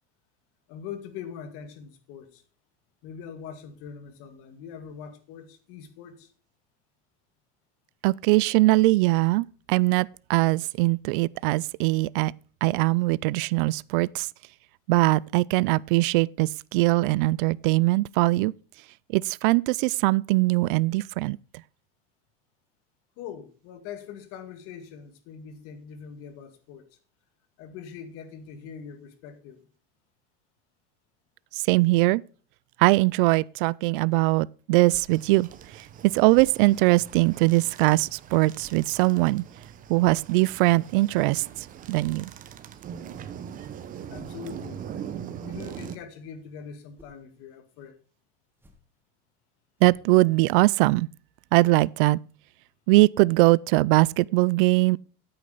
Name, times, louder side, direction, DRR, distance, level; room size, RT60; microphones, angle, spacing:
voice 1, 0.7-2.4 3.0-6.3 23.2-27.0 27.6-29.7 44.1-44.9 45.4-48.0, left 7 dB, 50° left, 1.9 m, -42 dB
voice 2, 8.0-12.3 12.6-14.3 14.9-18.5 19.1-21.4 31.7-32.2 32.8-35.5 36.0-39.4 39.9-41.4 41.9-42.3 49.8-51.1 51.5-52.2 52.9-55.0, right 21 dB, 60° right, 0.4 m, -21 dB
sound 1, 34.9-35.2 36.3-36.7 37.1-37.4 38.6-38.9 40.0-40.3 42.0-42.3 43.9-44.5 45.2-46.2 46.7-47.2 48.5-49.0 49.8-50.2, left 1 dB, 5° right, 1.7 m, -54 dB
sound 2, 35.1-46.0, right 8 dB, 30° right, 1.0 m, -41 dB
9.7 x 8.8 x 3.9 m
supercardioid pair, 150°, 29 cm